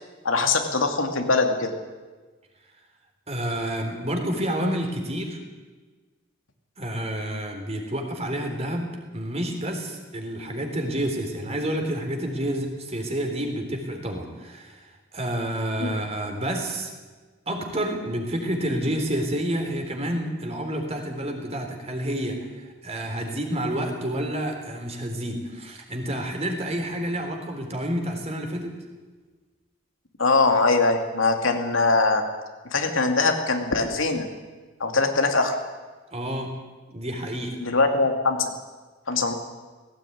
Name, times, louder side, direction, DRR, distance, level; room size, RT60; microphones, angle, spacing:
voice 1, 0.2-1.7 15.8-16.0 30.2-32.2 32.7-34.3 34.8-35.6 37.6-38.5 39.1-39.3, left 3 dB, 90° left, 5 dB, 2.7 m, -22 dB
voice 2, 3.3-5.4 6.8-16.9 17.5-28.7 36.1-36.5 36.9-37.6, right 1 dB, 35° right, 3 dB, 3.8 m, -29 dB
17.5 x 17.0 x 9.5 m, 1.3 s
head